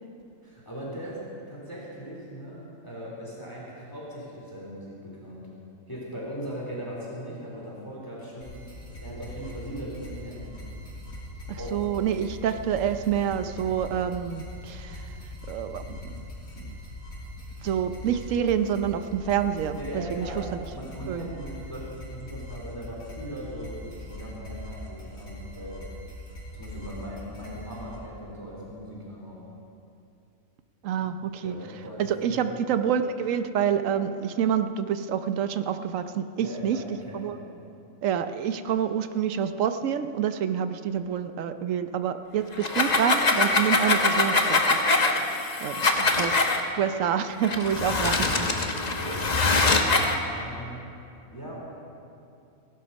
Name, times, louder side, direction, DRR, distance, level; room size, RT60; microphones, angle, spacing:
voice 1, 0.4-1.2 1.5-5.4 5.9-8.5 9.0-10.4 11.6-11.8 19.8-25.8 26.5-29.4 31.0-31.1 31.4-32.5 36.4-37.4 49.0-49.6 50.2-50.8 51.3-51.5, equal, 15° left, -5 dB, 2.8 m, -39 dB
sound 1, 8.4-28.0, left 1 dB, 80° left, 4.0 m, -41 dB
voice 2, 11.5-15.1 15.5-16.3 16.6-16.8 17.6-20.6 21.1-21.3 30.8-31.5 32.0-36.8 37.1-37.4 38.0-46.5 46.8-48.5, right 8 dB, 70° right, 10 dB, 1.0 m, -28 dB
sound 2, 42.5-46.6 47.4-50.2, left 3 dB, 35° left, 1.0 m, -23 dB
17.0 x 11.5 x 5.3 m, 2.6 s
omnidirectional pair, 1.4 m